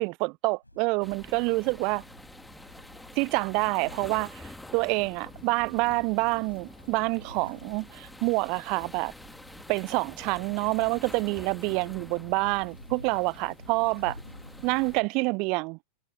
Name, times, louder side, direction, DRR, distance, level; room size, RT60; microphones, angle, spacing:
voice 1, 0.0-2.0 3.2-9.1 9.7-14.2 14.6-15.8, right 29 dB, 45° right, 0.5 m, -27 dB
sound 1, 0.6-15.1, left 1 dB, 85° left, 5.8 m, -50 dB
sound 2, 1.0-15.0, left 1 dB, 5° left, 2.2 m, -48 dB
figure-of-eight pair, 90°, 0 cm